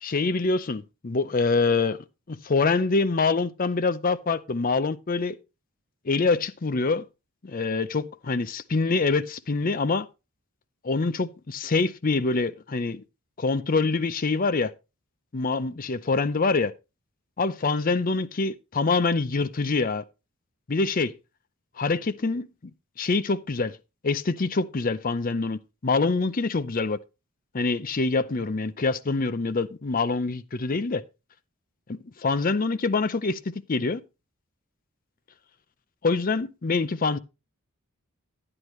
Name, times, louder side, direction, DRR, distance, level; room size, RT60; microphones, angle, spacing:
voice 1, 0.0-5.4 6.0-7.0 7.4-10.1 10.8-13.0 13.4-14.7 15.3-16.7 17.4-20.0 20.7-21.1 21.8-22.5 23.0-23.8 24.0-27.0 27.5-31.0 31.9-33.4 33.7-34.0 36.0-37.2, left 3 dB, 40° left, 0.5 m, -25 dB
10.5 x 9.8 x 3.1 m
head